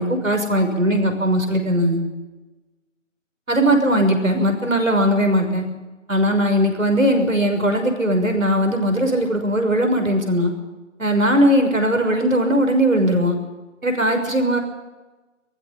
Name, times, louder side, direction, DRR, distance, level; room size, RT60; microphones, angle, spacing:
voice 1, 0.0-2.0 3.5-5.7 6.1-10.5 11.0-13.4 13.8-14.6, equal, 85° right, 5 dB, 6.2 m, -19 dB
20.5 x 15.5 x 10.0 m, 1.2 s
figure-of-eight pair, 165°, 39 cm